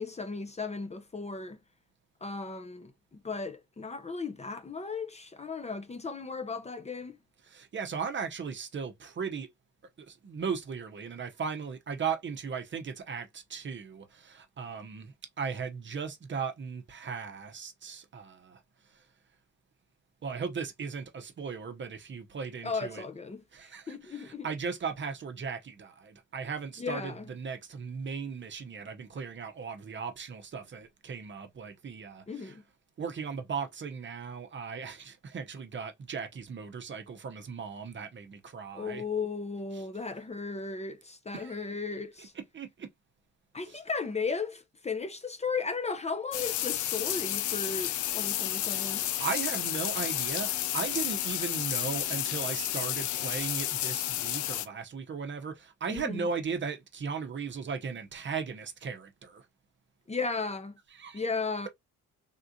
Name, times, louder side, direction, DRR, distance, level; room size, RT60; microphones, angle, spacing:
voice 1, 0.0-1.6 2.2-2.9 3.2-7.2 22.6-24.5 26.8-27.3 32.3-32.6 38.7-42.3 43.5-49.1 55.9-56.3 60.1-60.7 61.1-61.7, left 4 dB, 20° left, 0.6 m, -35 dB
voice 2, 7.4-9.5 10.0-18.6 18.9-19.0 20.2-23.0 23.5-32.6 33.0-39.0 39.7-39.8 41.3-41.8 42.2-42.3 42.5-42.9 43.7-43.8 49.2-59.5 60.9-61.2, right 5 dB, 40° right, 0.7 m, -37 dB
sound 1, 46.3-54.7, left 13 dB, 75° left, 0.5 m, -31 dB
3.6 x 2.4 x 2.6 m
cardioid pair, 90°, 30 cm